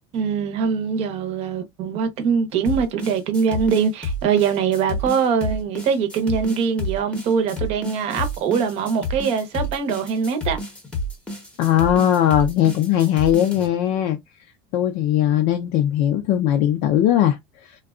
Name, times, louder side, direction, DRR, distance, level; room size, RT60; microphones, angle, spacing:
voice 1, 0.1-10.6, right 6 dB, 40° right, 0.8 m, -22 dB
sound 1, 2.7-13.7, left 1 dB, 5° left, 0.8 m, -30 dB
voice 2, 11.6-14.2 14.7-17.8, left 11 dB, 50° left, 0.4 m, -19 dB
3.6 x 2.3 x 2.3 m
supercardioid pair, 155°, 15 cm